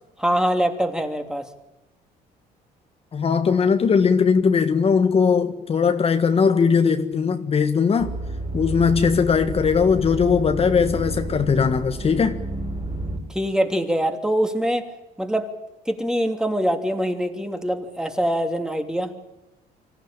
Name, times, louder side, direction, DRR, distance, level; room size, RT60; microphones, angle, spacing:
voice 1, 0.2-1.5 13.3-14.8 15.2-15.5 15.9-19.1, equal, 5° right, 2.9 m, -23 dB
voice 2, 3.1-8.1 8.5-12.4, left 6 dB, 35° left, 1.6 m, -19 dB
sound 1, 8.0-13.2, right 2 dB, 35° right, 5.8 m, -30 dB
25.5 x 15.0 x 9.0 m
cardioid pair, 110°, 17 cm